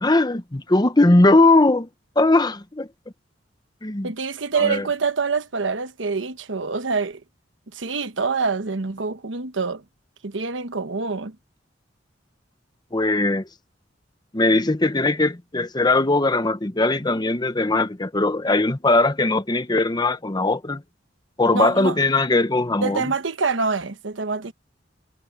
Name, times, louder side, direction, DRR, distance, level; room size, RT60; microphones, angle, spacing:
voice 1, 0.0-1.9 2.2-2.9 3.8-4.1 4.5-4.9 12.9-13.5 14.3-20.8 21.4-23.1, left 2 dB, 20° left, 0.9 m, -19 dB
voice 2, 4.0-7.2 7.7-9.8 10.2-11.3 21.5-22.0 22.8-24.5, right 4 dB, 90° right, 1.2 m, -25 dB
head